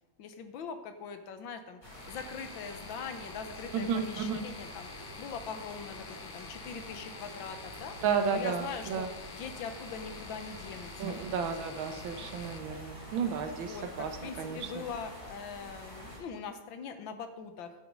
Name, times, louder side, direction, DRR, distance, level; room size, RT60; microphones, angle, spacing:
voice 1, 0.2-4.9 5.2-8.0 8.3-11.2 13.4-17.7, left 6 dB, 75° left, 8 dB, 1.7 m, -42 dB
sound 1, 1.8-16.2, equal, 25° left, 4.1 m, -47 dB
sound 2, 1.9-12.6, left 6 dB, 60° left, 1.1 m, -49 dB
voice 2, 3.7-4.4 8.0-9.1 11.0-14.9, right 6 dB, 80° right, 7 dB, 1.8 m, -33 dB
10.5 x 7.9 x 5.3 m, 1.2 s
omnidirectional pair, 2.1 m